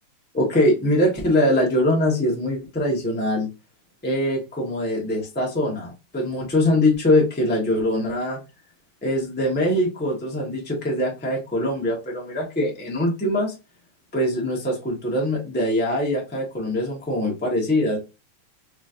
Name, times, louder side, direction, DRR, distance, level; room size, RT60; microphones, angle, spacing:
voice 1, 0.3-3.5 4.0-8.4 9.0-13.5 14.1-18.0, left 1 dB, 10° left, -2 dB, 0.6 m, -22 dB
4.0 x 3.1 x 2.5 m, 0.29 s
omnidirectional pair, 2.4 m